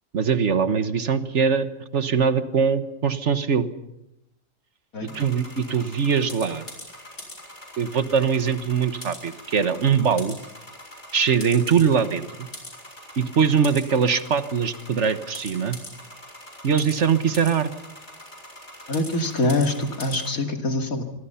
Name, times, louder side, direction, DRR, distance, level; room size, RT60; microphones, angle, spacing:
voice 1, 0.1-1.7 1.9-3.7 5.0-6.6 7.8-10.4 11.1-12.5 13.2-15.8 16.6-17.7, right 6 dB, 55° right, 11 dB, 1.5 m, -22 dB
sound 1, 5.0-20.3, left 1 dB, 65° left, 7.0 m, -42 dB
voice 2, 18.9-21.0, left 2 dB, 90° left, 4 dB, 2.9 m, -24 dB
26.5 x 23.5 x 5.8 m, 0.89 s
omnidirectional pair, 1.4 m